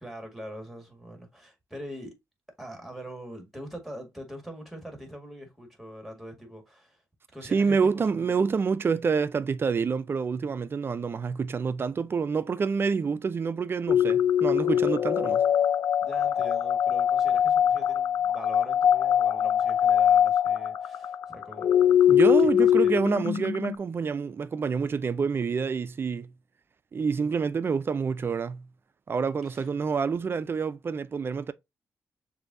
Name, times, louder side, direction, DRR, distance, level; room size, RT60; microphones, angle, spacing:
voice 1, 0.0-2.1 2.6-7.0 7.3-7.8 8.1-8.3 16.0-22.9 29.4-29.7, equal, ahead, 1.8 m, -43 dB
voice 2, 7.4-15.4 22.1-26.3 26.9-28.7 29.1-31.5, right 5 dB, 40° right, 0.4 m, -27 dB
sound 1, 13.9-23.8, left 9 dB, 80° left, 0.3 m, -23 dB
6.6 x 2.7 x 2.6 m
cardioid pair, 100°, 6 cm